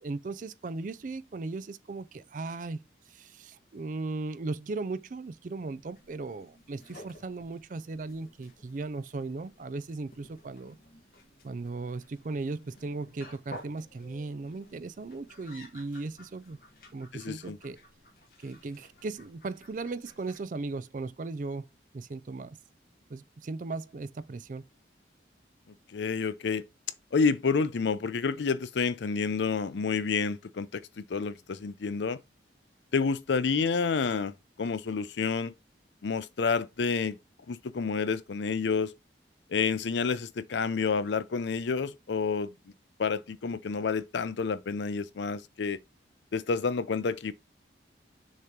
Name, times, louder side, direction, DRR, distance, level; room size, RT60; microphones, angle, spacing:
voice 1, 0.0-10.8 11.4-16.6 16.9-17.8 18.4-21.7 21.9-22.6 23.1-24.6, right 3 dB, 45° right, 0.4 m, -37 dB
sound 1, 5.7-20.4, left 1 dB, 55° left, 1.4 m, -54 dB
voice 2, 17.1-17.6 25.9-26.6 27.1-32.2 32.9-34.3 34.6-35.5 36.0-37.2 37.5-38.9 39.5-42.5 43.0-45.8 46.3-47.3, left 5 dB, 80° left, 0.5 m, -29 dB
6.6 x 3.0 x 5.0 m
head